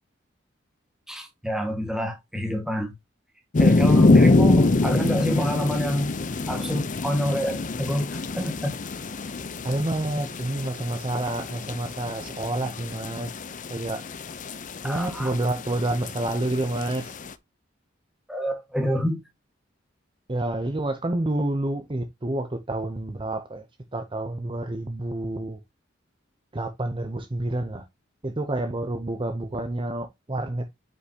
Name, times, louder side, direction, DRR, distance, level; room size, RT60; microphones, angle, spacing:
voice 1, 1.1-2.9 3.6-6.1 6.5-8.7 14.8-15.3 18.3-19.2, equal, 5° right, 1.7 m, -27 dB
sound 1, 3.5-17.3, left 2 dB, 45° left, 0.6 m, -25 dB
voice 2, 9.6-13.3 13.7-14.0 14.8-17.1 20.3-23.6 23.9-25.6 26.5-27.8 28.2-30.6, right 1 dB, 25° right, 0.8 m, -28 dB
8.2 x 5.5 x 2.9 m
head